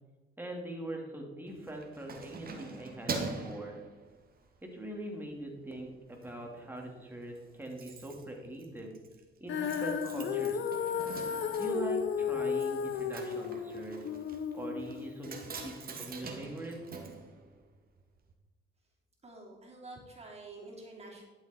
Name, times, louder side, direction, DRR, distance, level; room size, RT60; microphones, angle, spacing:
voice 1, 0.4-3.8 4.6-8.9 9.4-10.6 11.6-14.0 14.5-15.4 15.6-16.8, right 1 dB, 10° right, 0 dB, 2.8 m, -42 dB
Keys jangling, 1.5-4.6 5.0-5.2 5.6-6.3 6.6-6.7 6.9-7.0 7.2-18.0 18.3-18.4, right 4 dB, 50° right, 1.9 m, -44 dB
Female singing, 9.5-15.7, left 7 dB, 70° left, 1.0 m, -34 dB
voice 2, 19.2-21.2, right 2 dB, 30° right, -2 dB, 3.3 m, -48 dB
11.5 x 7.3 x 4.5 m, 1.3 s
cardioid pair, 90°, 20 cm